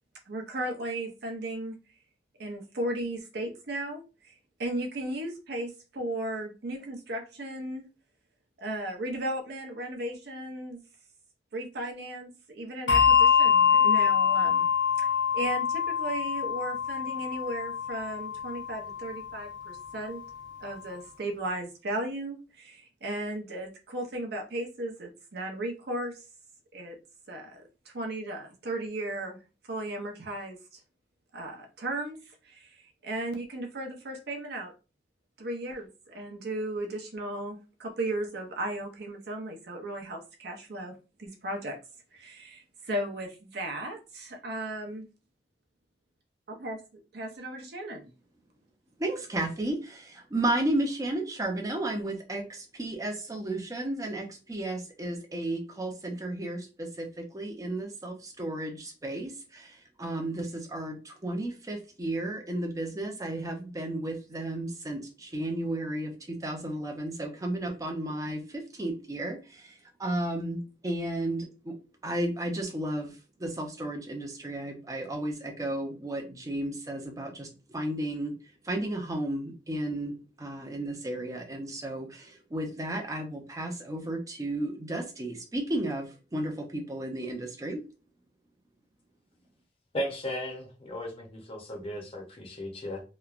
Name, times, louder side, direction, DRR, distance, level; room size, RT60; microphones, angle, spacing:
voice 1, 0.3-1.8 2.4-4.3 4.6-7.8 8.6-10.8 11.5-14.7 15.0-15.1 15.3-20.2 20.6-26.2 26.7-27.0 27.3-27.7 27.9-29.4 29.7-30.6 31.3-32.2 32.4-32.8 33.0-34.7 35.4-40.9 41.2-41.8 42.1-45.1 46.5-46.8 47.1-48.1, right 1 dB, 60° right, 2 dB, 0.6 m, -35 dB
Bell, 12.9-19.7, left 7 dB, 80° left, 0.8 m, -25 dB
voice 2, 49.0-71.7 72.0-78.3 78.6-87.8, right 1 dB, 20° right, 3 dB, 0.5 m, -33 dB
voice 3, 89.9-93.0, equal, 35° left, 0 dB, 0.7 m, -36 dB
3.0 x 2.1 x 2.4 m, 0.33 s
head